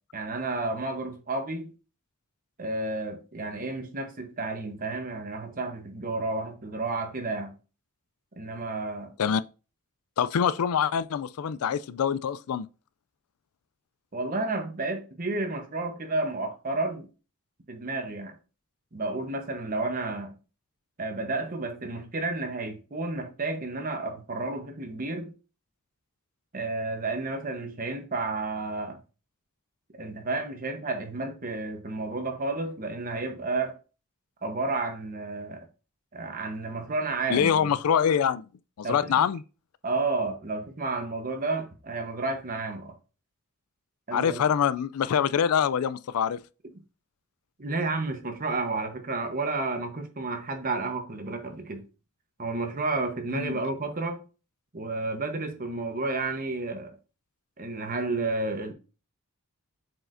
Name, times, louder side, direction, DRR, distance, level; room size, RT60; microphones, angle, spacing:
voice 1, 0.1-1.7 2.6-7.5 8.4-9.1 14.1-17.1 17.7-18.3 18.9-20.3 21.0-25.3 26.5-29.0 29.9-33.8 34.4-35.6 36.1-37.7 38.8-39.1 39.8-43.0 44.1-44.4 47.6-51.8 52.4-54.2 54.7-56.9 57.6-58.7, right 3 dB, 40° right, 1.0 m, -31 dB
voice 2, 10.2-12.7 37.3-38.5 38.8-39.4 44.1-46.4 53.3-53.6, left 8 dB, 80° left, 0.4 m, -25 dB
7.5 x 4.7 x 2.6 m
head